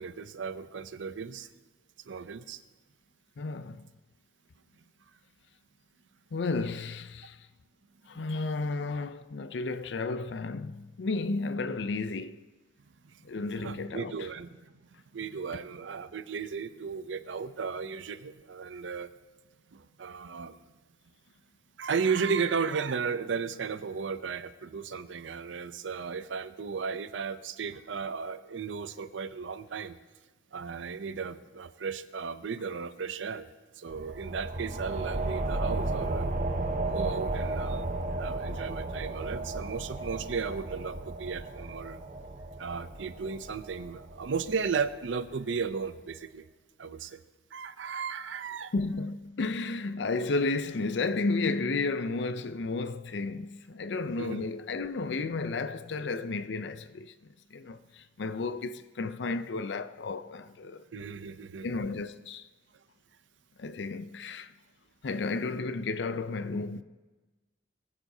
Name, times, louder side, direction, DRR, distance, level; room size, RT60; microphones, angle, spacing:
voice 1, 0.0-1.5 2.1-2.6 8.1-8.3 13.0-13.2 13.6-14.7 15.1-19.1 19.7-20.6 21.8-30.0 30.5-33.5 33.8-36.3 36.8-42.0 42.6-46.5 46.8-47.2 47.5-48.7 54.2-54.5 60.9-61.7, right 5 dB, 90° right, 0.6 m, -35 dB
voice 2, 3.4-3.9 6.3-7.4 8.1-12.4 13.2-14.3 48.7-57.1 57.5-60.8 61.6-62.5 63.6-64.5 65.0-66.8, left 3 dB, 70° left, 0.5 m, -32 dB
sound 1, 33.9-45.1, right 2 dB, 45° right, 0.9 m, -34 dB
20.0 x 10.5 x 2.7 m
head